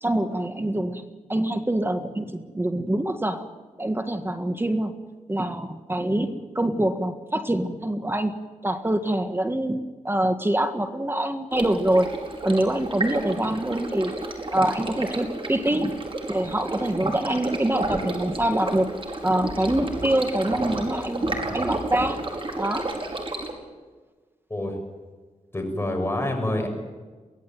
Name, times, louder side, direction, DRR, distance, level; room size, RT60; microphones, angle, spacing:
voice 1, 0.0-1.0 1.3-3.4 3.8-5.0 5.3-8.3 8.6-12.1 12.4-14.2 14.5-15.9 16.3-21.3 21.5-22.2 22.6-22.9, right 1 dB, 15° right, 7 dB, 1.7 m, -25 dB
Stream, 11.5-23.5, right 2 dB, 45° right, 5.1 m, -31 dB
voice 2, 25.5-26.7, left 1 dB, 20° left, 3 dB, 6.7 m, -27 dB
24.0 x 17.0 x 9.3 m, 1.4 s
wide cardioid pair, 85°, 13 cm